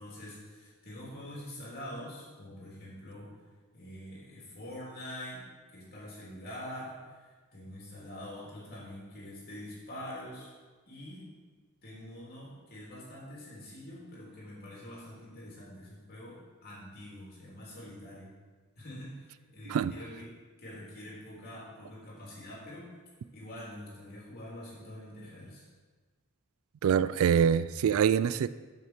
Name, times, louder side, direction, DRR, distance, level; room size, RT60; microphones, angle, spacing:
voice 1, 0.0-3.3 3.7-5.5 5.7-7.0 7.5-10.5 10.9-11.3 11.8-18.3 18.8-20.3 20.6-22.9 23.3-25.6, left 1 dB, 45° left, -6 dB, 3.2 m, -45 dB
voice 2, 26.8-28.5, right 8 dB, 70° right, 16 dB, 0.3 m, -25 dB
7.5 x 5.7 x 6.6 m, 1.4 s
head